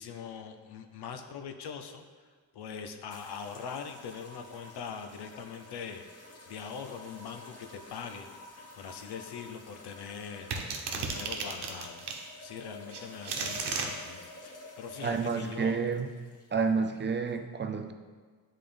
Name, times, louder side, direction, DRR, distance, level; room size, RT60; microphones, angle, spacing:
voice 1, 0.0-2.3 2.5-6.0 6.5-8.3 8.8-12.0 12.4-15.8, left 6 dB, 75° left, 7 dB, 0.7 m, -42 dB
sound 1, 3.1-17.4, left 2 dB, 40° left, 1.1 m, -50 dB
sound 2, 10.5-12.2 12.9-13.9, right 5 dB, 85° right, 1.0 m, -34 dB
voice 2, 15.0-16.1 16.5-17.9, right 5 dB, 30° right, 6 dB, 0.5 m, -29 dB
10.5 x 3.7 x 3.4 m, 1.5 s
cardioid pair, 105°, 39 cm